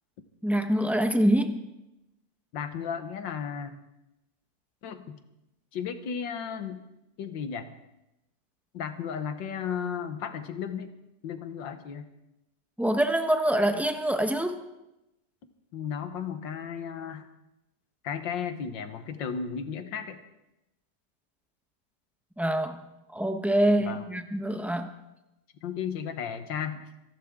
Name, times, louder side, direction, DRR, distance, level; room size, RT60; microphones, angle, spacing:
voice 1, 0.4-1.6 12.8-14.6 22.4-22.8 23.1-24.9, right 1 dB, ahead, 6 dB, 0.5 m, -25 dB
voice 2, 2.5-3.8 4.8-5.2 5.7-6.9 7.2-7.7 8.7-10.9 11.2-12.1 15.7-17.3 18.0-20.2 23.9-24.0 25.6-26.8, left 7 dB, 80° left, 9 dB, 1.8 m, -34 dB
26.0 x 12.0 x 3.7 m, 0.93 s
omnidirectional pair, 2.0 m